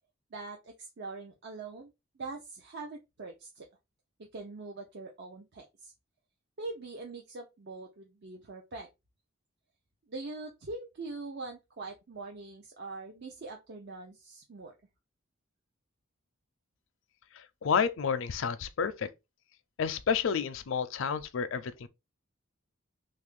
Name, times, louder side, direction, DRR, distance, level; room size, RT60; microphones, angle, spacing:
voice 1, 0.3-3.7 4.2-5.9 6.6-8.9 10.1-14.7, right 3 dB, 55° right, 0.6 m, -43 dB
voice 2, 17.6-19.1 19.8-21.9, left 6 dB, 65° left, 0.4 m, -30 dB
3.3 x 2.4 x 3.5 m
head